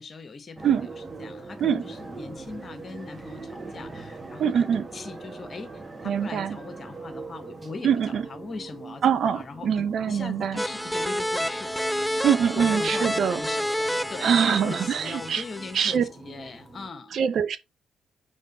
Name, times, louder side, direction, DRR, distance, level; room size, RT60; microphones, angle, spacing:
voice 1, 0.0-5.7 6.0-9.0 9.3-11.8 12.4-17.2, left 4 dB, 40° left, 1.2 m, -40 dB
sound 1, 0.6-16.9, right 3 dB, 30° right, 2.0 m, -42 dB
voice 2, 4.4-4.8 6.0-6.6 7.8-8.2 9.0-10.6 12.2-13.4 14.2-15.4 15.7-16.0 17.1-17.6, right 8 dB, 55° right, 0.8 m, -23 dB
sound 2, 10.6-16.0, equal, ahead, 0.4 m, -29 dB
5.2 x 5.2 x 4.1 m
figure-of-eight pair, 40°, 0 cm